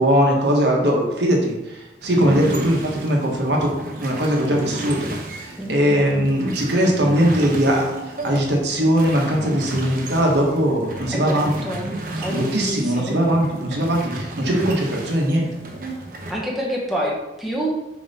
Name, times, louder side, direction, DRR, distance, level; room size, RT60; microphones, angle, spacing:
voice 1, 0.0-3.7 4.0-11.5 12.3-15.5, equal, 65° right, -1 dB, 1.3 m, -20 dB
sound 1, 2.0-16.3, right 1 dB, 45° right, 1.0 m, -33 dB
voice 2, 2.2-2.5 5.6-6.3 11.1-11.9 12.2-13.2 16.3-17.7, equal, ahead, -4 dB, 0.9 m, -28 dB
5.3 x 5.0 x 4.2 m, 1.0 s
head